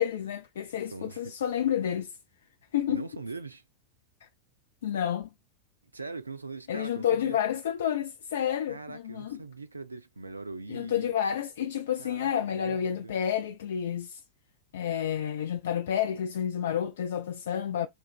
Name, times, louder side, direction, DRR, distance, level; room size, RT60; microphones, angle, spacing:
voice 1, 0.0-2.1 2.7-3.1 4.8-5.3 6.7-9.4 10.7-14.2 14.7-17.9, left 9 dB, 60° left, 0.4 m, -30 dB
voice 2, 0.9-1.4 2.9-3.6 5.9-7.4 8.7-11.1 12.0-13.1, right 3 dB, 80° right, 0.3 m, -41 dB
3.6 x 2.3 x 4.1 m
figure-of-eight pair, 90°, 0 cm